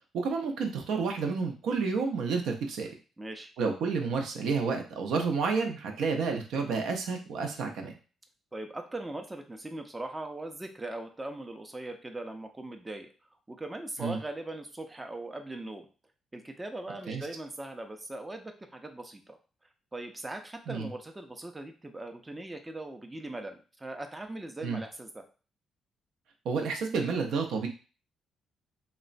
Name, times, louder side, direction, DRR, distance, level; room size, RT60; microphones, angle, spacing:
voice 1, 0.2-2.9 3.6-7.9 14.0-14.2 17.1-17.2 20.7-20.9 24.6-24.8 26.4-27.7, right 5 dB, 80° right, 3 dB, 0.5 m, -30 dB
voice 2, 3.2-3.5 8.5-13.1 13.5-15.9 16.3-19.4 19.9-25.2, right 2 dB, 15° right, 5 dB, 0.4 m, -40 dB
2.9 x 2.1 x 2.5 m, 0.35 s
cardioid pair, 90°, 0 cm